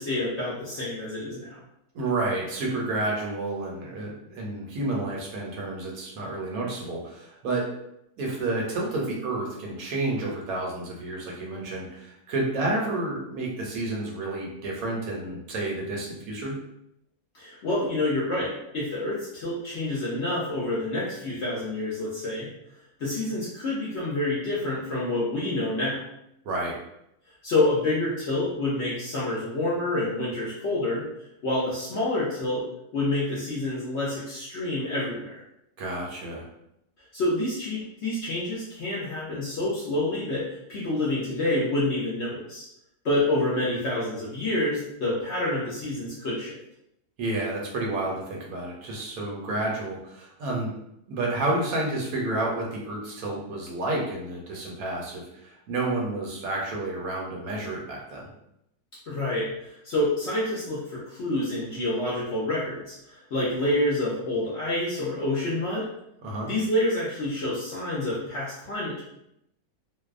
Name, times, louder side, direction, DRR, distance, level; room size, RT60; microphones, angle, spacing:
voice 1, 0.0-1.6 17.3-22.5 23.0-26.0 27.4-31.0 31.4-32.6 32.9-35.4 37.1-42.6 43.0-46.5 59.1-65.9 66.5-69.0, left 1 dB, 60° left, -7 dB, 0.7 m, -28 dB
voice 2, 1.9-7.7 8.2-16.6 26.4-26.8 35.8-36.5 47.2-50.7 51.1-58.3 66.2-66.5, right 2 dB, 70° right, -2 dB, 1.0 m, -30 dB
2.6 x 2.1 x 2.3 m, 0.79 s
omnidirectional pair, 1.7 m